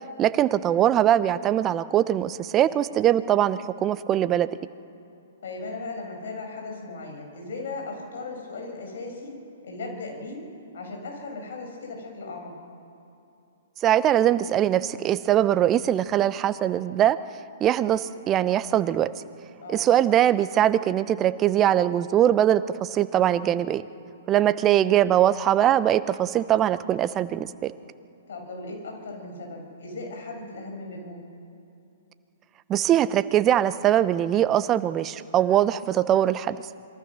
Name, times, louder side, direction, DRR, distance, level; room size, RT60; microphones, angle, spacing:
voice 1, 0.2-4.5 13.8-17.2 17.6-19.1 19.7-23.8 24.3-27.7 32.7-36.6, right 11 dB, 25° right, 14 dB, 0.9 m, -22 dB
voice 2, 5.4-9.4 9.6-10.4 10.7-12.6 19.6-19.9 28.3-31.2, left 3 dB, 65° left, 2 dB, 7.8 m, -37 dB
27.0 x 22.0 x 6.5 m, 2.8 s
figure-of-eight pair, 120°, 0 cm